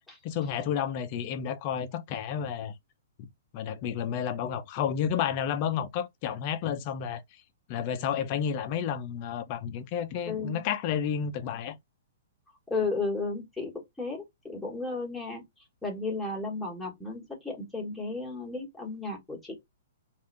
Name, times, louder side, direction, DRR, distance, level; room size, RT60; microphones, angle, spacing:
voice 1, 0.2-2.7 3.2-3.3 3.5-7.2 7.7-11.8, left 8 dB, 35° left, 0.6 m, -31 dB
voice 2, 10.2-10.6 12.7-15.4 15.8-19.6, left 3 dB, 5° left, 1.3 m, -34 dB
3.5 x 2.6 x 3.2 m
hypercardioid pair, 155°, 0 cm